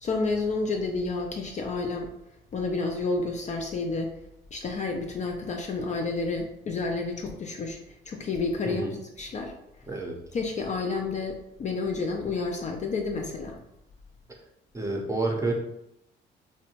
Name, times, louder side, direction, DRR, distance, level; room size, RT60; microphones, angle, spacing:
voice 1, 0.0-2.1 2.5-4.1 4.5-7.8 8.1-8.8 9.2-9.5 10.3-13.6, left 3 dB, 35° left, 2 dB, 0.4 m, -30 dB
voice 2, 14.7-15.5, right 2 dB, 15° right, 0 dB, 0.6 m, -28 dB
2.7 x 2.1 x 2.7 m, 0.81 s
cardioid pair, 90°, 20 cm